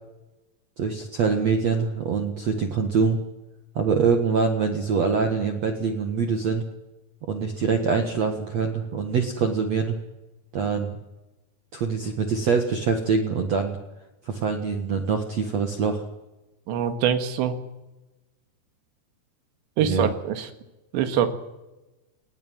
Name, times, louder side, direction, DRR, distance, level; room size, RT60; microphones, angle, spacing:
voice 1, 0.8-3.2 3.8-6.6 7.3-10.0 10.5-11.0 11.7-13.8 14.2-16.0 19.8-20.1, right 5 dB, 55° right, 5 dB, 2.1 m, -24 dB
voice 2, 16.7-17.5 19.8-20.5 20.9-21.3, right 9 dB, 80° right, 8 dB, 4.0 m, -24 dB
20.0 x 18.0 x 9.2 m, 1.0 s
omnidirectional pair, 5.1 m